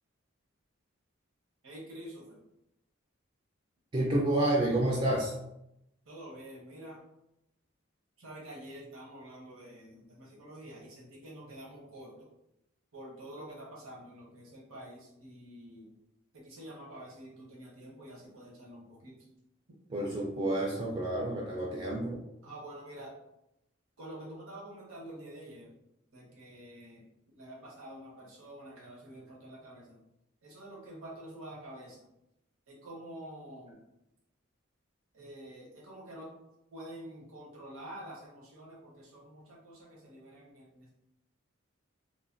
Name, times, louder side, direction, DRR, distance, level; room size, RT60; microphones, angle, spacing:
voice 1, 1.6-2.4 6.0-7.0 8.2-12.3 12.9-15.9 16.3-19.2 22.4-23.1 24.0-25.7 26.1-27.0 27.4-30.0 30.4-32.1 32.7-33.8 35.1-36.3 36.7-40.9, right 1 dB, 75° right, -4 dB, 0.8 m, -47 dB
voice 2, 3.9-5.3 19.9-22.2, right 1 dB, 25° right, -3 dB, 0.3 m, -29 dB
3.1 x 2.1 x 2.5 m, 0.85 s
head